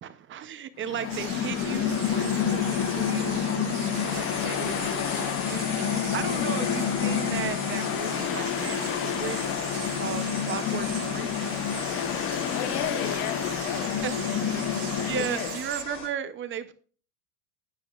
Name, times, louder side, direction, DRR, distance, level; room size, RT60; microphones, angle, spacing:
voice 1, 0.0-9.4 9.9-11.6 14.0-14.1 15.1-16.7, right 9 dB, 25° right, 0.6 m, -36 dB
Mechanical fan, 0.8-15.6, left 8 dB, 30° left, 0.6 m, -29 dB
sound 1, 1.0-16.1, left 6 dB, 50° left, 4.4 m, -37 dB
sound 2, 1.1-15.8, right 16 dB, 85° right, 0.9 m, -41 dB
voice 2, 12.5-15.6, left 8 dB, 80° left, 1.6 m, -36 dB
13.0 x 9.6 x 2.4 m
supercardioid pair, 140°, 44 cm